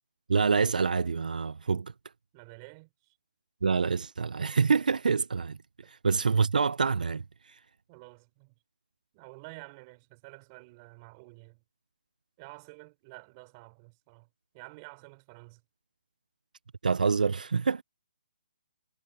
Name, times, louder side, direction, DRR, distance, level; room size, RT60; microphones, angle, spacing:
voice 1, 0.3-1.9 3.6-5.6 5.9-7.6 16.8-17.8, right 5 dB, 90° right, 0.5 m, -26 dB
voice 2, 2.3-3.2 5.8-5.9 7.9-8.6 9.1-11.6 12.4-14.3 14.5-15.6, right 28 dB, 25° right, 3.7 m, -50 dB
hypercardioid pair, 155°, 4 cm